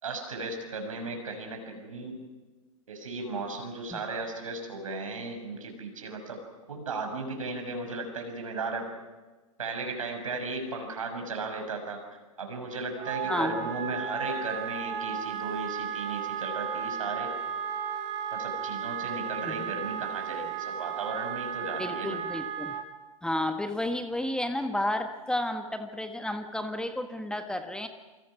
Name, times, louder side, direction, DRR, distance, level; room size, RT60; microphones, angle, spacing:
voice 1, 0.0-2.2 2.9-6.4 6.7-8.9 9.6-12.0 12.4-17.3 18.3-22.2, right 3 dB, 70° right, 4 dB, 6.3 m, -35 dB
Wind instrument woodwind instrument, 12.9-22.8, right 8 dB, 40° right, 3.4 m, -34 dB
voice 2, 13.3-13.7 19.5-19.8 21.8-22.8 23.2-27.9, left 1 dB, 5° left, 7 dB, 1.6 m, -32 dB
28.0 x 25.0 x 5.9 m, 1.3 s
figure-of-eight pair, 95°, 18 cm